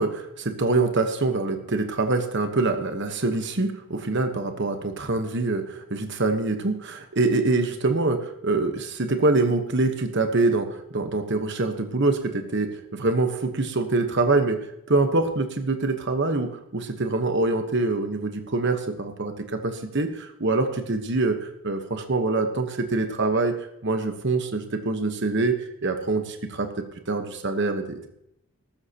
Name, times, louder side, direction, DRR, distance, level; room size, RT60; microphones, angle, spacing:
voice 1, 0.0-14.6 14.9-23.5 23.8-25.6 25.8-28.1, right 3 dB, 55° right, 7 dB, 1.2 m, -25 dB
14.5 x 13.0 x 2.9 m, 0.77 s
head